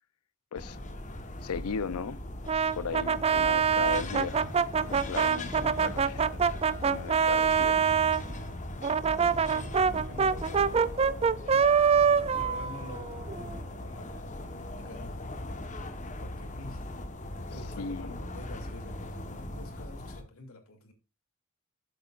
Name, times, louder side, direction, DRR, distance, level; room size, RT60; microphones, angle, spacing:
sound 1, 0.6-20.2, left 1 dB, 35° left, 1.2 m, -39 dB
voice 1, 1.4-2.2 2.7-4.4 4.9-6.2 6.8-7.8 17.8-18.1, left 5 dB, 85° left, 0.6 m, -36 dB
Brass instrument, 2.5-8.2 8.8-13.6, right 6 dB, 30° right, 0.4 m, -25 dB
voice 2, 9.1-11.7 12.1-15.5 16.2-16.8 17.5-20.9, left 2 dB, 70° left, 2.8 m, -48 dB
12.5 x 7.6 x 2.5 m
head